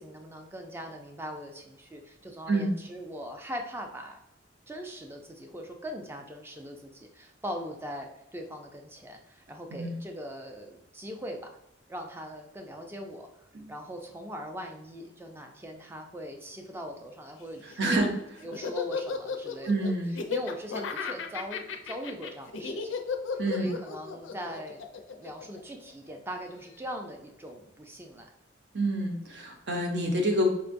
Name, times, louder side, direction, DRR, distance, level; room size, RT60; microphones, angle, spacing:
voice 1, 0.0-4.2 4.7-11.4 11.9-13.3 13.7-18.1 18.4-19.9 20.3-23.0 23.5-24.8 25.1-28.3, equal, 10° right, 3 dB, 0.4 m, -40 dB
voice 2, 17.6-18.1 19.6-20.2 23.4-23.7 28.7-30.5, right 1 dB, 60° right, 1 dB, 0.7 m, -27 dB
Laughter, 17.7-26.1, left 5 dB, 80° left, 0.4 m, -35 dB
4.4 x 2.2 x 2.5 m, 0.79 s
head